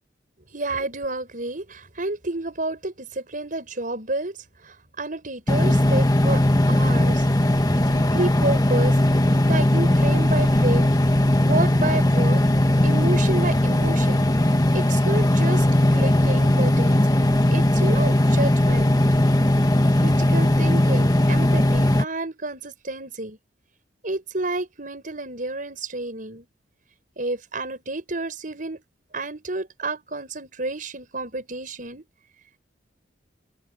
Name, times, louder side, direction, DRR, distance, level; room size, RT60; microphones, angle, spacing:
voice 1, 0.5-4.4 4.6-7.3 7.9-9.0 9.5-12.4 12.8-14.3 14.7-15.7 15.9-17.1 17.5-19.0 20.0-23.4 24.0-26.5 27.2-28.8 29.1-32.0, right 2 dB, 45° right, 5.6 m, -30 dB
sound 1, 5.5-22.0, left 1 dB, 20° left, 1.6 m, -19 dB
head